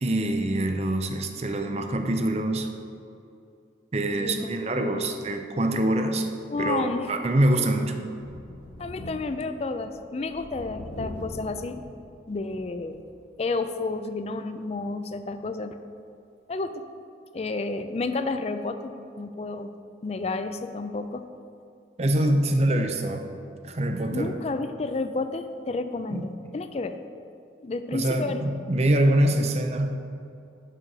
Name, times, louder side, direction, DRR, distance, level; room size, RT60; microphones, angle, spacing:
voice 1, 0.0-2.7 3.9-6.3 6.6-8.0 22.0-23.3 23.6-24.3 26.1-26.2 27.9-29.9, right 1 dB, 35° right, 6 dB, 0.5 m, -24 dB
voice 2, 4.8-5.1 6.5-7.1 8.8-11.8 12.3-13.0 13.4-15.8 16.5-16.8 17.3-19.7 20.0-21.2 24.1-27.0 27.6-28.4, left 3 dB, 35° left, 10 dB, 0.4 m, -31 dB
Thunder, 8.2-13.2 13.7-13.8 15.1-15.2, left 1 dB, 75° left, 0.8 m, -42 dB
6.5 x 6.3 x 5.3 m, 2.6 s
head